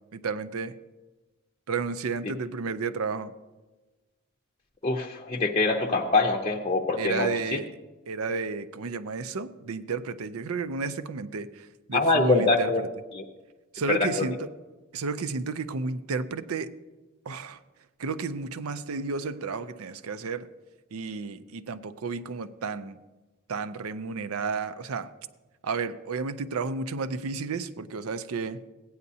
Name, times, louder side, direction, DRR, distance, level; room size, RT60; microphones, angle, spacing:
voice 1, 0.1-0.8 1.7-3.3 7.0-7.7 8.1-12.9 13.7-14.5 14.9-16.7 17.3-17.6 18.0-20.5 20.9-23.0 23.5-25.1 25.6-28.6, right 4 dB, 85° right, 12 dB, 0.5 m, -32 dB
voice 2, 4.8-7.6 11.9-12.8 13.1-13.2 13.9-14.3, left 3 dB, 25° left, 1 dB, 0.6 m, -24 dB
16.0 x 9.5 x 2.7 m, 1.2 s
head